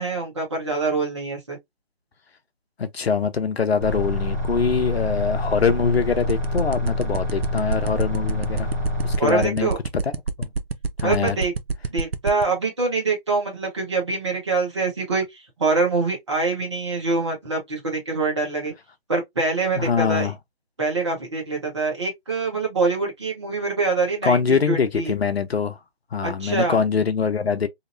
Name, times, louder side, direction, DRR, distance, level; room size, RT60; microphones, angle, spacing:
voice 1, 0.0-1.6 9.2-9.8 11.0-11.5 11.9-15.2 15.6-18.7 19.1-20.3 20.8-25.1 26.2-26.8, right 3 dB, 30° right, 1.0 m, -24 dB
voice 2, 2.8-8.7 9.0-10.1 10.4-10.5 11.0-11.4 19.8-20.4 24.2-25.8 26.1-27.7, left 5 dB, 80° left, 0.7 m, -23 dB
sound 1, 3.8-9.2, left 1 dB, 15° left, 0.6 m, -26 dB
sound 2, 6.3-12.4, right 4 dB, 70° right, 0.6 m, -24 dB
2.9 x 2.0 x 2.5 m
figure-of-eight pair, 165°, 31 cm